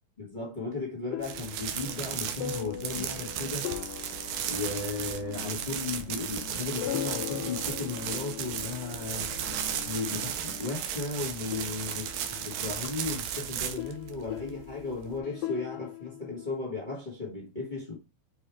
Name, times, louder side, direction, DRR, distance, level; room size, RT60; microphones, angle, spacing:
voice 1, 0.2-3.7 4.5-9.3 9.8-18.0, left 3 dB, 40° left, 0.6 m, -35 dB
sound 1, 1.1-11.1 11.4-16.5, left 14 dB, 80° left, 2.1 m, -40 dB
sound 2, 1.2-15.2, right 9 dB, 80° right, 2.4 m, -35 dB
7.0 x 3.3 x 4.5 m
omnidirectional pair, 4.1 m